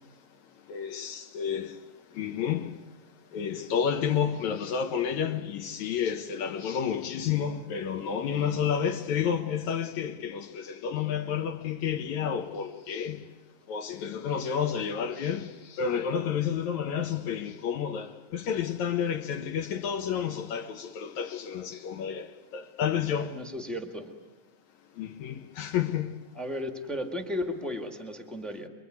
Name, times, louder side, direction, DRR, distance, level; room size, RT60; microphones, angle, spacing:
voice 1, 0.7-1.8 2.1-2.8 3.3-13.2 13.7-23.4 25.0-26.1, left 8 dB, 65° left, 2.1 m, -30 dB
voice 2, 23.0-24.1 26.3-28.7, left 1 dB, ahead, 0.9 m, -35 dB
25.5 x 24.0 x 9.4 m
omnidirectional pair, 3.9 m